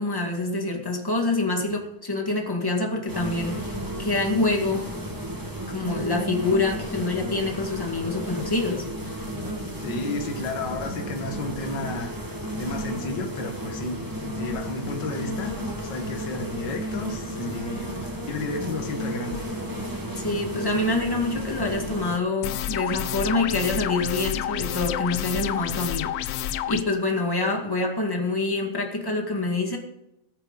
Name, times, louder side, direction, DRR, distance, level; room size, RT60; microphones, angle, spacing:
voice 1, 0.0-3.7 4.0-4.9 5.7-8.8 20.1-29.8, left 2 dB, 10° left, 2 dB, 1.4 m, -26 dB
sound 1, 3.1-22.2, equal, 10° right, 1.4 m, -33 dB
voice 2, 9.8-12.1 12.6-14.0 14.3-15.6 15.8-19.5, left 2 dB, 40° left, 4 dB, 2.0 m, -32 dB
sound 2, 22.4-26.8, left 11 dB, 75° left, 1.5 m, -29 dB
18.0 x 9.2 x 4.1 m, 0.86 s
omnidirectional pair, 3.4 m